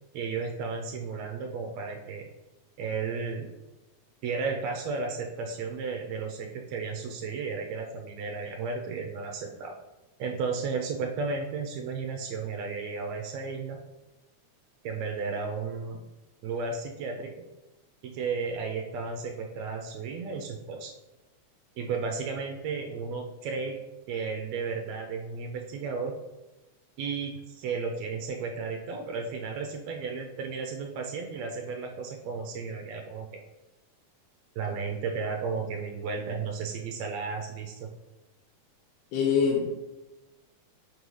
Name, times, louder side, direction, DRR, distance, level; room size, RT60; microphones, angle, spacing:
voice 1, 0.1-2.3 2.8-3.5 4.2-9.7 10.2-13.8 14.8-16.0 16.4-17.4 18.0-20.9 21.8-23.8 24.1-26.1 27.0-33.3 34.6-37.9, right 4 dB, 80° right, 2 dB, 1.7 m, -33 dB
voice 2, 39.1-39.8, left 6 dB, 90° left, -1 dB, 2.2 m, -24 dB
6.0 x 3.1 x 5.3 m, 1.0 s
omnidirectional pair, 3.5 m